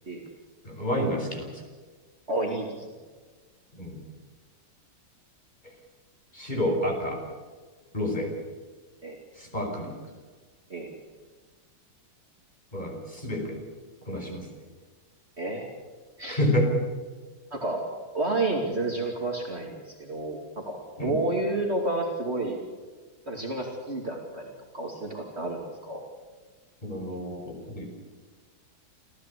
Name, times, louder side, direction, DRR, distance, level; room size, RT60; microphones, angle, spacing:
voice 1, 0.6-1.6 3.7-4.0 6.3-7.2 7.9-8.3 9.4-9.9 12.7-13.6 14.1-14.5 16.3-16.7 21.0-21.2 26.8-27.8, left 1 dB, 20° left, 1 dB, 5.3 m, -29 dB
voice 2, 2.3-2.9 9.0-9.2 10.7-10.9 15.4-15.7 16.2-16.4 17.5-17.8 18.1-22.6 23.3-26.0, right 2 dB, 30° right, 0 dB, 2.9 m, -30 dB
27.5 x 15.5 x 8.4 m, 1.4 s
omnidirectional pair, 2.1 m